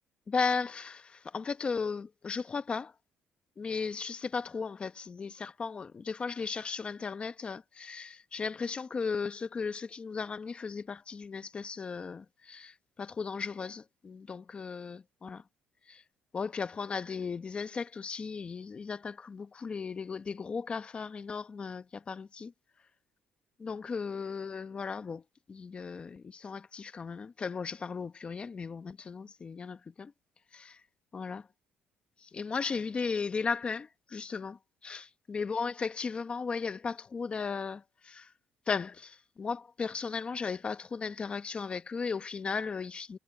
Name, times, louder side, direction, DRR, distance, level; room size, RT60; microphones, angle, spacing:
voice 1, 0.3-2.9 3.6-15.4 15.9-16.0 16.3-22.5 23.6-25.2 25.5-30.1 30.5-30.8 31.1-31.5 32.2-38.3 38.7-43.2, left 5 dB, 30° left, 1.1 m, -36 dB
cardioid pair, 130°, 4 cm